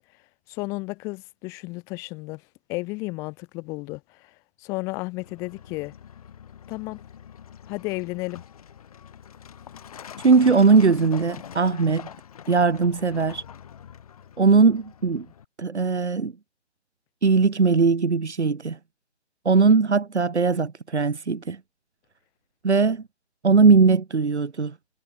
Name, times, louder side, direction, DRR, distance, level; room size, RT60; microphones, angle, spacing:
voice 1, 0.5-2.4 2.7-5.9 6.7-7.0 7.7-8.4, left 25 dB, 10° left, 1.7 m, -33 dB
Truck, 5.2-15.5, left 9 dB, 35° left, 7.6 m, -44 dB
voice 2, 10.2-12.1 12.5-13.4 14.4-15.3 15.6-16.3 17.2-18.8 19.4-21.6 22.6-23.0 23.4-24.7, right 4 dB, 80° right, 6.5 m, -19 dB
hypercardioid pair, 175°, 34 cm